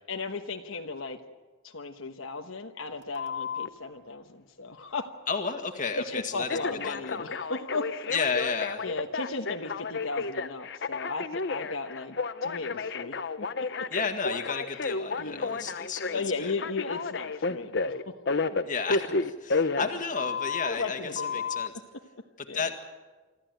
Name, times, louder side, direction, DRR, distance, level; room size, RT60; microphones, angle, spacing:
voice 1, 0.1-1.2 1.6-5.1 5.9-8.1 8.8-12.2 12.4-13.9 15.2-15.7 16.1-18.1 20.6-21.4 22.5-22.7, left 3 dB, 75° left, 4 dB, 1.2 m, -36 dB
Telephone, 3.2-3.7 6.5-20.7 21.2-21.7, left 4 dB, 55° left, 0.8 m, -31 dB
voice 2, 5.3-7.2 8.1-8.8 13.9-16.5 18.7-21.7 22.4-22.8, left 5 dB, 40° left, 4 dB, 1.9 m, -32 dB
25.0 x 14.0 x 9.2 m, 1.3 s
head